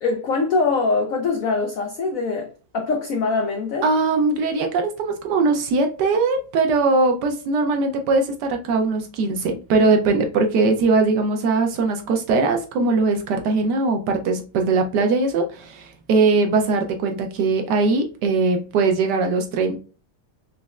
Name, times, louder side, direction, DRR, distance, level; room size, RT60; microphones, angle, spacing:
voice 1, 0.0-3.9, left 4 dB, 85° left, 0.7 m, -23 dB
voice 2, 3.8-19.8, right 3 dB, 70° right, 1.1 m, -20 dB
4.2 x 3.0 x 2.3 m
omnidirectional pair, 2.1 m